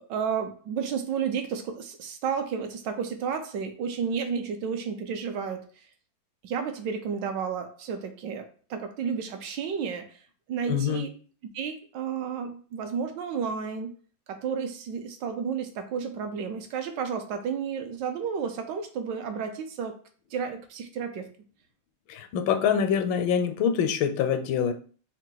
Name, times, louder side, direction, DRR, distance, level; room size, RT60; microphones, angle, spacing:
voice 1, 0.1-5.7 6.4-10.2 10.5-11.1 11.5-13.9 14.3-20.0 20.3-21.3, right 6 dB, 75° right, 7 dB, 1.2 m, -32 dB
voice 2, 10.7-11.0 22.1-24.7, left 7 dB, 85° left, 8 dB, 1.3 m, -25 dB
4.5 x 2.4 x 3.9 m, 0.41 s
omnidirectional pair, 2.1 m